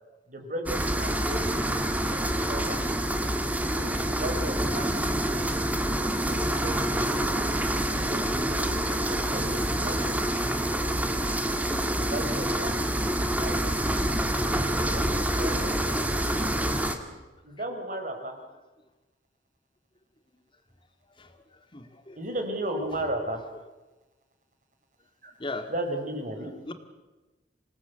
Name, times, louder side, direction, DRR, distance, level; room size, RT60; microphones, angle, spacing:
voice 1, 0.3-1.8 2.1-2.8 3.7-7.4 8.0-10.7 11.7-13.0 13.4-14.3 14.8-18.4 22.2-23.4 25.2-25.3 25.7-26.5, right 1 dB, 45° right, 5 dB, 4.5 m, -36 dB
sound 1, 0.7-17.0, right 1 dB, 10° right, 1.8 m, -27 dB
voice 2, 21.2-22.2 25.4-25.7 26.7-26.8, left 2 dB, 30° left, 7 dB, 2.0 m, -39 dB
27.0 x 18.5 x 8.1 m, 1.2 s
head